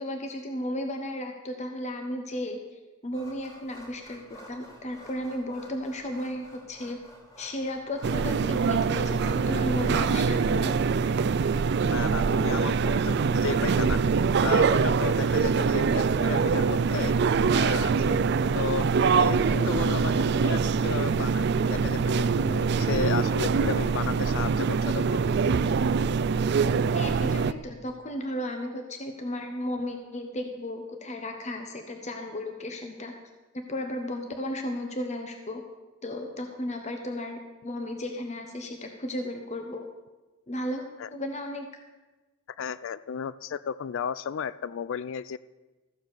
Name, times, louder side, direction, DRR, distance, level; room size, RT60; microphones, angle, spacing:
voice 1, 0.0-2.6 3.0-7.0 7.4-10.7 26.9-33.1 33.5-35.6 36.0-39.8 40.5-41.7, left 1 dB, 35° left, 4 dB, 1.0 m, -34 dB
sound 1, 3.1-17.5, equal, 15° left, 2.8 m, -51 dB
sound 2, 8.0-27.5, right 5 dB, 55° right, 0.4 m, -24 dB
voice 2, 11.9-13.1 13.4-14.0 14.4-17.2 17.5-18.2 18.5-18.9 19.2-25.2 41.0-41.1 42.6-45.4, left 7 dB, 60° left, 17 dB, 0.4 m, -34 dB
14.0 x 7.9 x 6.6 m, 1.2 s
head